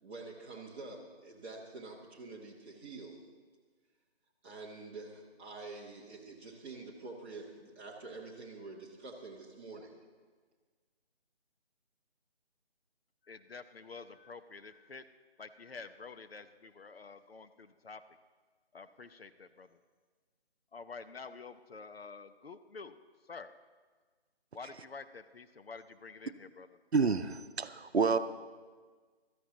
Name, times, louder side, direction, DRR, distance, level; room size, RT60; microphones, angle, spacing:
voice 1, 0.0-3.2 4.4-9.9, right 3 dB, 10° right, -4 dB, 1.0 m, -47 dB
voice 2, 13.2-15.1 15.4-18.0 18.7-19.8 20.7-23.0 23.2-23.5 24.5-26.7, left 4 dB, 65° left, 10 dB, 0.8 m, -48 dB
voice 3, 26.9-28.2, right 4 dB, 75° right, 11 dB, 0.8 m, -28 dB
16.0 x 13.5 x 4.0 m, 1.5 s
figure-of-eight pair, 155°, 32 cm